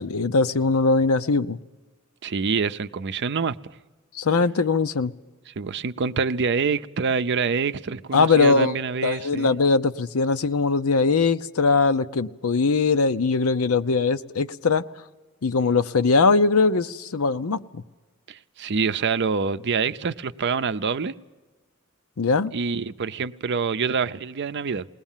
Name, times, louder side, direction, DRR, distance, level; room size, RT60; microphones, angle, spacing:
voice 1, 0.0-1.6 4.1-5.1 8.1-8.7 9.0-14.8 15.4-17.8 22.2-22.5, left 4 dB, 80° left, 12 dB, 0.7 m, -21 dB
voice 2, 2.2-3.6 5.6-9.5 18.3-21.1 22.5-24.9, right 5 dB, 55° right, 12 dB, 0.6 m, -26 dB
21.0 x 19.0 x 7.4 m, 1.3 s
head